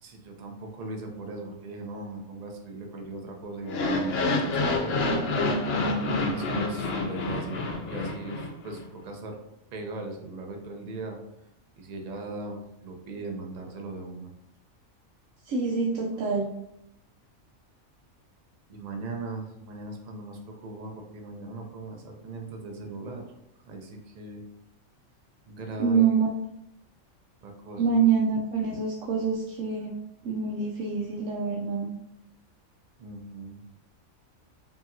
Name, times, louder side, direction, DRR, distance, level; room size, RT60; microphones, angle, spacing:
voice 1, 0.0-5.2 6.2-9.4 9.7-11.2 11.8-14.3 18.7-23.3 23.6-24.4 25.5-26.0 27.4-27.8 33.0-33.6, right 3 dB, 45° right, 2 dB, 0.6 m, -39 dB
sound 1, 3.6-8.8, left 2 dB, 60° left, 0.8 m, -28 dB
voice 2, 15.4-16.5 25.8-26.3 27.8-29.9 30.2-31.9, right 5 dB, 75° right, -3 dB, 1.0 m, -25 dB
5.0 x 2.8 x 2.7 m, 0.79 s
omnidirectional pair, 1.4 m